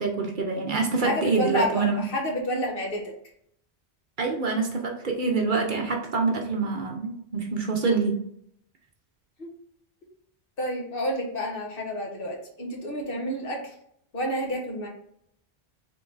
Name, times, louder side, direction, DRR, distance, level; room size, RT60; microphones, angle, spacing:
voice 1, 0.0-2.0 4.2-8.2, right 4 dB, 55° right, 2 dB, 0.8 m, -26 dB
voice 2, 1.0-3.1 9.4-9.5 10.6-13.7 14.1-14.9, equal, 55° left, 0 dB, 1.3 m, -29 dB
3.8 x 3.6 x 3.8 m, 0.70 s
omnidirectional pair, 1.1 m